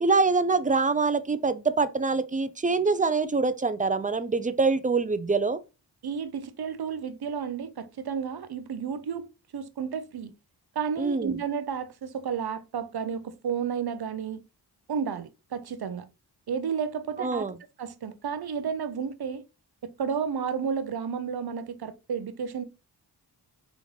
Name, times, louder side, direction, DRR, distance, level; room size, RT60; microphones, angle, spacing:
voice 1, 0.0-5.6 11.0-11.4 17.2-17.5, right 4 dB, 20° right, 0.5 m, -25 dB
voice 2, 6.0-9.3 9.5-10.3 10.8-14.4 14.9-16.1 16.5-17.5 17.8-19.4 19.8-22.6, right 7 dB, 60° right, 0.6 m, -32 dB
5.0 x 2.5 x 3.2 m
cardioid pair, 45°, 43 cm